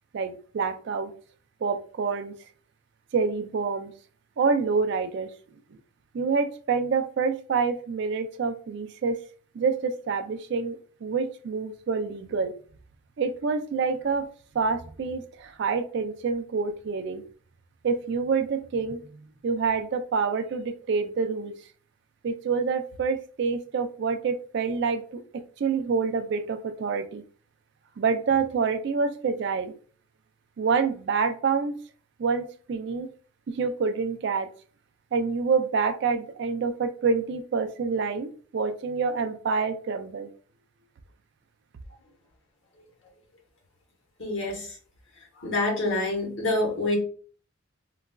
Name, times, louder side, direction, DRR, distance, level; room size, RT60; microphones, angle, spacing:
voice 1, 0.1-1.1 1.6-2.4 3.1-3.9 4.4-5.3 6.1-9.2 9.5-12.5 13.2-14.3 14.5-17.2 17.8-19.0 19.4-21.5 22.2-25.2 25.6-27.2 28.0-29.7 30.6-31.8 32.2-33.1 33.5-34.5 35.1-40.3, right 5 dB, 55° right, 7 dB, 0.3 m, -27 dB
voice 2, 44.2-44.7 45.4-47.0, left 2 dB, 65° left, 0 dB, 1.1 m, -26 dB
3.9 x 2.3 x 2.2 m, 0.42 s
head